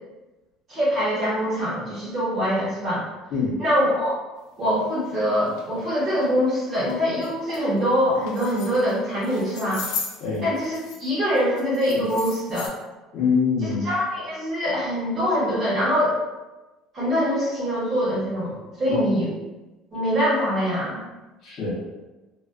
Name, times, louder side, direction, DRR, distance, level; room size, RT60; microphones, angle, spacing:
voice 1, 0.7-3.1 3.6-4.2 4.6-9.8 10.4-12.7 13.8-16.2 16.9-19.3 19.9-21.0, equal, 30° right, -8 dB, 1.1 m, -24 dB
sound 1, 4.9-5.0 5.5-5.6 6.1-6.3 6.8-6.9 7.2-7.7 8.2-8.9 9.2-11.1 11.4-12.7, left 5 dB, 80° left, 0.4 m, -36 dB
voice 2, 13.1-13.9 18.9-19.0 21.4-21.7, left 5 dB, 45° left, -6 dB, 0.8 m, -24 dB
2.4 x 2.3 x 2.2 m, 1.1 s
cardioid pair, 150°, 0 cm